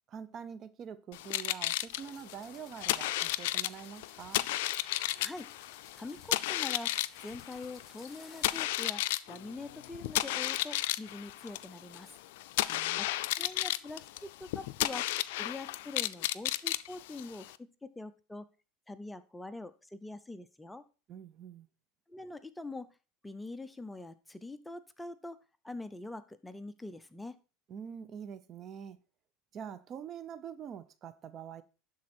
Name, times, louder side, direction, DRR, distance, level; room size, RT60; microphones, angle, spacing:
voice 1, 0.1-4.5 12.6-13.0 21.1-21.7 27.7-29.0 29.5-31.6, right 8 dB, 40° right, 0.6 m, -45 dB
sound 1, 1.1-17.6, left 16 dB, 75° left, 0.4 m, -33 dB
sound 2, 2.1-8.6, left 4 dB, 25° left, 2.2 m, -59 dB
voice 2, 5.2-5.5 6.0-12.1 13.0-13.1 13.4-15.1 15.4-18.5 18.9-20.8 22.1-22.9 23.2-25.4 25.6-27.4, left 2 dB, 5° left, 0.6 m, -44 dB
11.5 x 4.2 x 4.4 m
supercardioid pair, 115°, 0 cm